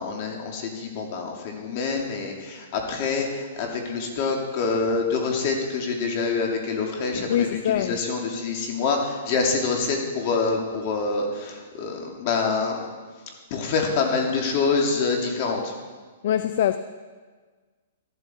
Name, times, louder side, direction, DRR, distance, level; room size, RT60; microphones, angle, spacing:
voice 1, 0.0-12.8 13.5-15.7, left 4 dB, 40° left, 2.7 m, -26 dB
voice 2, 7.3-8.0 16.2-16.8, left 10 dB, 60° left, 0.5 m, -23 dB
14.0 x 12.0 x 4.6 m
hypercardioid pair, 150°, 0 cm